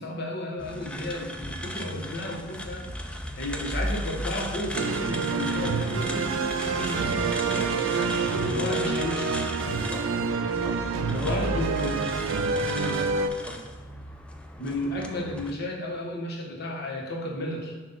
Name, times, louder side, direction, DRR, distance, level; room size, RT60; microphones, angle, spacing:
voice 1, 0.0-9.4 11.0-12.2 12.7-13.0 14.6-17.7, left 1 dB, 55° left, -1 dB, 1.1 m, -33 dB
sound 1, 0.6-15.5, left 1 dB, 5° left, 0.3 m, -36 dB
sound 2, 4.7-13.3, right 4 dB, 80° right, 0.4 m, -27 dB
voice 2, 9.6-10.1 10.4-11.5 12.9-13.7, left 1 dB, 10° right, -1 dB, 0.7 m, -41 dB
7.2 x 2.4 x 5.5 m, 1.3 s
head